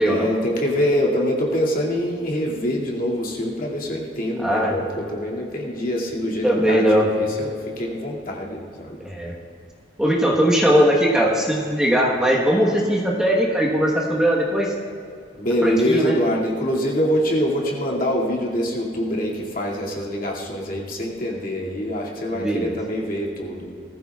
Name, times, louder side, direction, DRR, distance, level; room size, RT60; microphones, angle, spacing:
voice 1, 0.0-9.0 15.4-23.7, equal, 50° left, -3 dB, 2.3 m, -24 dB
voice 2, 4.4-4.8 6.4-7.1 9.0-9.3 10.0-14.7 15.6-16.2 22.3-22.8, equal, 5° right, -3 dB, 1.2 m, -19 dB
20.0 x 14.5 x 2.4 m, 2.4 s
head